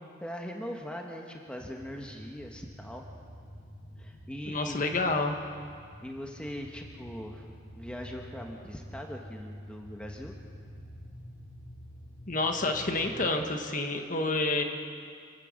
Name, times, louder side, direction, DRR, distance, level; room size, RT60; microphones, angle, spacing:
voice 1, 0.2-3.0 4.0-4.8 6.0-7.4 7.7-10.3, equal, 5° left, 1 dB, 1.3 m, -40 dB
sound 1, 1.7-13.3, equal, 65° left, 2.9 m, -48 dB
voice 2, 4.5-5.3 12.3-14.6, left 2 dB, 40° left, 4 dB, 1.5 m, -29 dB
27.0 x 15.5 x 6.5 m, 2.2 s
head